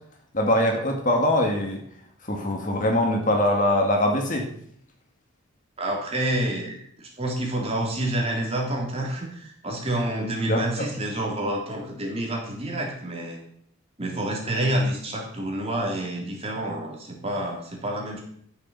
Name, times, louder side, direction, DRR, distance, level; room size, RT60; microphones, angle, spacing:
voice 1, 0.3-1.8 2.3-4.5 10.5-10.6, left 1 dB, 40° left, 2 dB, 2.1 m, -22 dB
voice 2, 5.8-13.4 14.0-18.2, right 1 dB, 30° right, 0 dB, 3.4 m, -28 dB
13.5 x 7.0 x 7.1 m, 0.65 s
head